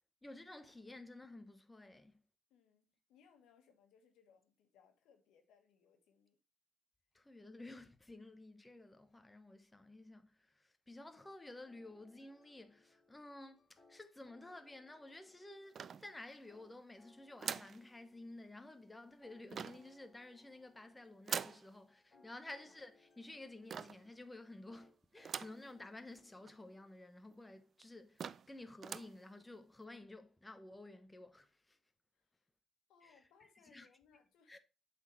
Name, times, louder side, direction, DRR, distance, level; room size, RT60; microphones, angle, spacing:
voice 1, 0.2-2.2 7.1-31.8 33.0-33.9 34.5-34.6, left 2 dB, 15° left, 0.9 m, -53 dB
voice 2, 2.5-2.8 3.1-6.4 22.1-22.4 32.9-34.6, left 6 dB, 90° left, 1.4 m, -68 dB
sound 1, 11.6-26.9, left 3 dB, 35° left, 2.4 m, -70 dB
sound 2, 15.7-16.5 17.4-17.8 19.5-19.9 21.3-21.7 23.7-24.1 25.2-25.7 26.1-26.2 26.5-26.6 27.3-27.4 27.8-27.9 28.2-28.5 28.8-29.2, right 7 dB, 50° right, 0.4 m, -43 dB
8.0 x 4.2 x 4.4 m
cardioid pair, 90°, 0 cm